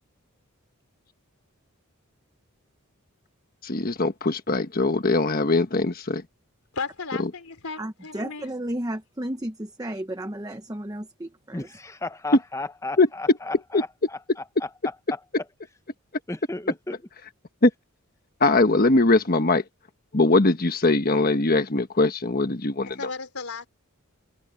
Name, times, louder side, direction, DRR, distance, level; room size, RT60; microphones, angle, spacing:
voice 1, 3.6-6.2 7.2-7.3 13.0-13.1 13.7-13.8 17.6-17.7 18.4-19.6 20.1-23.0, left 2 dB, 40° left, 1.2 m, -21 dB
voice 2, 6.7-8.5 22.9-23.7, left 4 dB, 80° left, 3.9 m, -35 dB
voice 3, 7.8-11.7, right 1 dB, 15° right, 0.9 m, -33 dB
voice 4, 11.5-13.9 14.6-14.7 16.3-17.0, left 2 dB, 15° left, 0.8 m, -34 dB
head